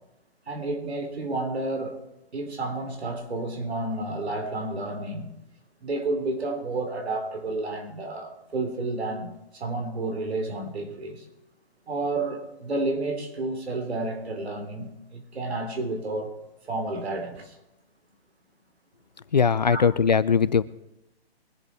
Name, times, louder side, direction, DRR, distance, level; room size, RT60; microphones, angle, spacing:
voice 1, 0.5-1.9 2.3-5.3 5.8-11.2 11.9-16.4 16.6-17.6 19.7-19.8, right 2 dB, 85° right, 3 dB, 4.1 m, -31 dB
voice 2, 19.3-20.6, left 6 dB, 45° left, 17 dB, 0.4 m, -20 dB
23.0 x 7.8 x 4.7 m, 0.91 s
hypercardioid pair, 175°, 31 cm